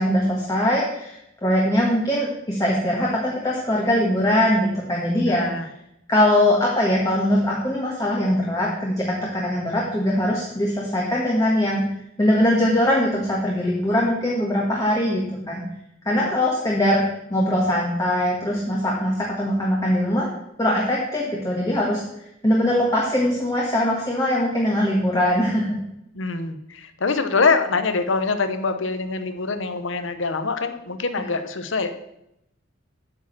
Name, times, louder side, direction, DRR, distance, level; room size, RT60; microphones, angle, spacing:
voice 1, 0.0-5.5 6.1-11.8 12.2-15.6 16.0-17.0 17.3-20.3 20.6-22.0 22.4-25.8, left 1 dB, 20° left, -3 dB, 1.5 m, -21 dB
voice 2, 5.2-5.7 16.1-16.3 26.1-31.9, left 4 dB, 75° left, 9 dB, 0.9 m, -24 dB
8.9 x 4.9 x 7.3 m, 0.82 s
head